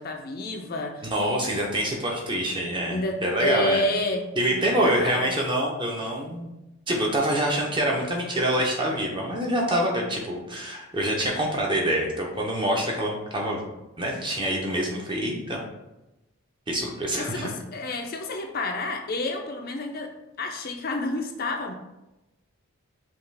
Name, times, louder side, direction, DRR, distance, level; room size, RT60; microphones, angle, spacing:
voice 1, 0.0-1.1 2.9-5.3 17.1-20.1 20.4-21.7, left 2 dB, 40° left, 3 dB, 0.4 m, -29 dB
voice 2, 1.0-3.8 4.4-6.5 6.9-13.6 14.0-15.6 16.7-17.5, right 1 dB, 20° right, -1 dB, 0.7 m, -26 dB
5.6 x 2.4 x 3.3 m, 0.96 s
head